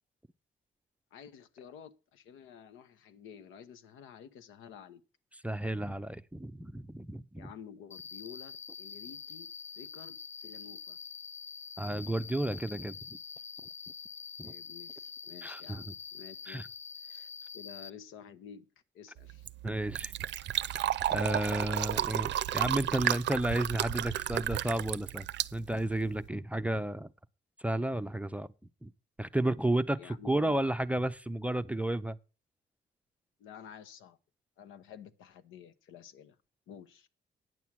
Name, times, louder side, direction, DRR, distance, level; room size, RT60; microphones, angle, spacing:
voice 1, 1.1-5.0 7.4-9.5 9.8-11.0 14.4-16.6 17.0-18.7 18.9-19.4 30.0-30.6 33.4-34.2 34.6-36.4 36.7-37.1, left 8 dB, 90° left, 0.9 m, -51 dB
voice 2, 5.4-7.5 11.8-13.2 14.4-14.5 15.4-15.9 16.5-16.7 19.6-20.1 21.1-27.1 27.6-28.5 28.8-28.9 29.2-32.2, right 1 dB, 5° right, 0.5 m, -32 dB
Cricket, 7.9-17.9, left 6 dB, 35° left, 0.7 m, -45 dB
Fill (with liquid), 19.2-26.3, right 12 dB, 65° right, 0.5 m, -33 dB
9.4 x 7.2 x 6.1 m
cardioid pair, 90°, 20 cm